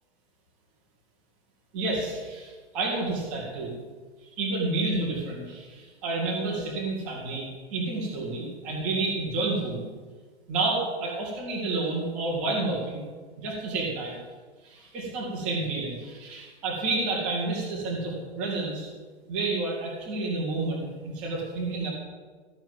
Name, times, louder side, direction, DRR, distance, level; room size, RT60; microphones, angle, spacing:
voice 1, 1.7-3.7 4.4-9.8 10.5-13.0 13.4-14.2 14.6-18.9 19.3-21.9, right 3 dB, 5° right, -4 dB, 0.4 m, -30 dB
13.5 x 5.7 x 9.0 m, 1.4 s
hypercardioid pair, 175°, 33 cm